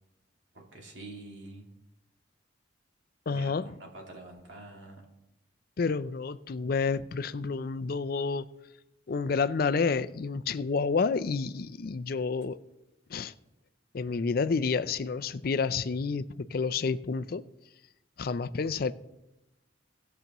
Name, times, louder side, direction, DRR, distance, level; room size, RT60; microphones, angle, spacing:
voice 1, 0.5-1.7 3.3-5.0, right 2 dB, 70° right, 2.2 m, -46 dB
voice 2, 3.3-3.7 5.8-8.5 9.1-12.6 13.1-13.3 13.9-17.4 18.2-18.9, left 4 dB, 50° left, 0.4 m, -29 dB
19.0 x 6.7 x 3.0 m
head